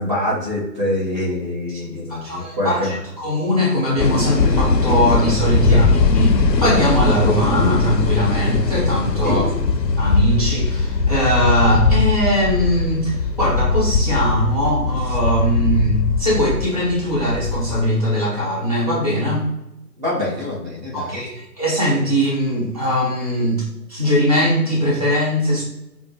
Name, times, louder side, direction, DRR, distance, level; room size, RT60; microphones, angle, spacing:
voice 1, 0.0-3.0 5.6-5.8 9.2-9.5 20.0-21.2, left 1 dB, 25° right, -6 dB, 1.1 m, -25 dB
voice 2, 1.8-5.9 6.1-9.4 10.0-19.5 20.9-25.6, equal, 25° left, -7 dB, 0.5 m, -20 dB
sound 1, 4.0-17.8, left 4 dB, 80° left, 0.6 m, -20 dB
5.2 x 2.1 x 3.0 m, 0.92 s
figure-of-eight pair, 145°, 50 cm